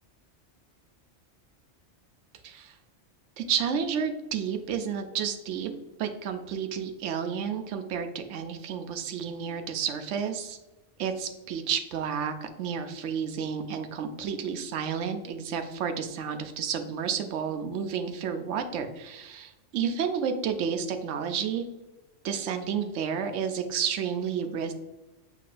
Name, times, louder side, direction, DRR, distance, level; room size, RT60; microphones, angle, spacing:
voice 1, 2.4-2.8 3.4-5.7 6.0-10.6 11.0-21.7 22.2-24.7, right 7 dB, 85° right, 7 dB, 0.9 m, -31 dB
6.5 x 3.1 x 2.5 m, 1.0 s
omnidirectional pair, 1.2 m